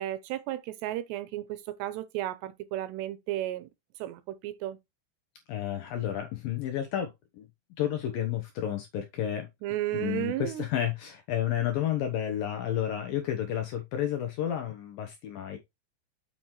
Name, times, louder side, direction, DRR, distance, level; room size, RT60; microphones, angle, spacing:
voice 1, 0.0-3.7 4.0-4.8 9.6-10.6, right 14 dB, 80° right, 2.7 m, -33 dB
voice 2, 5.5-7.5 7.8-9.5 9.9-15.6, left 10 dB, 75° left, 2.1 m, -31 dB
7.3 x 5.9 x 3.1 m
omnidirectional pair, 5.1 m